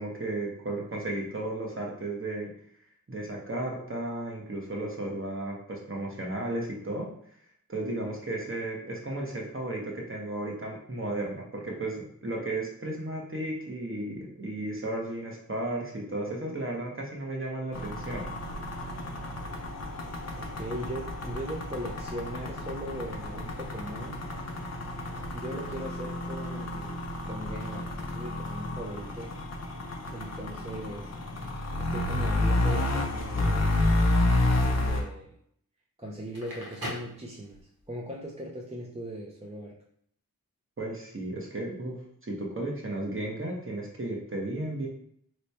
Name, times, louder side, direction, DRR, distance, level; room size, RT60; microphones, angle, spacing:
voice 1, 0.0-2.5 3.1-7.1 7.7-18.3 40.8-41.9 42.2-44.9, right 2 dB, 35° right, -1 dB, 0.9 m, -34 dB
sound 1, 17.7-35.0, left 1 dB, 50° left, 0.6 m, -30 dB
voice 2, 20.3-24.3 25.3-29.3 30.1-31.1 31.8-33.7 34.7-35.3 36.0-37.6 37.9-39.8, equal, 20° right, -3 dB, 0.5 m, -39 dB
Crackle, 36.2-37.9, left 1 dB, 80° right, 1.1 m, -40 dB
3.1 x 2.2 x 4.1 m, 0.67 s
wide cardioid pair, 65°, 35 cm